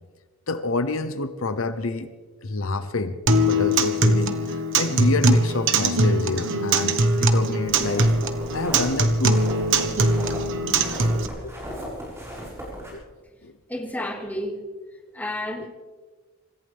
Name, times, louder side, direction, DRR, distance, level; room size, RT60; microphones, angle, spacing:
voice 1, 0.5-2.1 2.4-8.1 8.5-9.4 11.4-11.5 12.9-13.0 13.4-13.5 15.6-15.7, left 3 dB, 75° left, 10 dB, 0.9 m, -28 dB
Acoustic guitar, 3.3-11.3, right 1 dB, 65° right, 1.4 m, -21 dB
sound 1, 7.6-12.9, equal, 15° right, 7.2 m, -36 dB
voice 2, 13.7-14.6 15.1-15.7, left 1 dB, 10° left, 1 dB, 2.4 m, -31 dB
26.0 x 15.0 x 3.6 m, 1.4 s
head